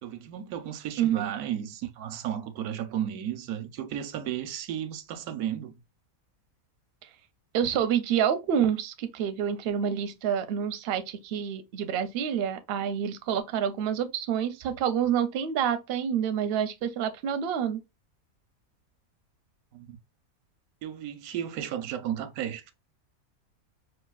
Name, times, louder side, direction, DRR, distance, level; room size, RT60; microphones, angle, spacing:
voice 1, 0.0-5.8 19.7-20.0 20.8-22.7, right 10 dB, 85° right, 1.1 m, -34 dB
voice 2, 1.0-1.3 7.5-17.8, right 8 dB, 60° right, 0.6 m, -28 dB
4.9 x 2.4 x 2.3 m
omnidirectional pair, 1.5 m